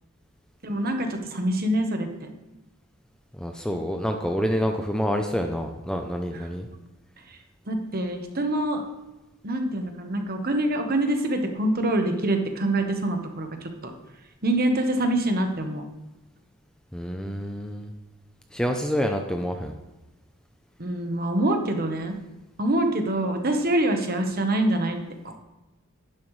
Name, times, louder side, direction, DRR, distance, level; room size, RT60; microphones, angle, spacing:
voice 1, 0.6-2.1 7.3-7.4 7.7-8.8 9.4-13.9 14.4-15.8 20.8-22.2 22.6-25.0, right 1 dB, 40° right, 5 dB, 1.2 m, -25 dB
voice 2, 3.3-6.7 16.9-17.9 18.5-19.7, equal, 5° left, 4 dB, 0.5 m, -27 dB
11.5 x 11.0 x 3.2 m, 1.0 s
head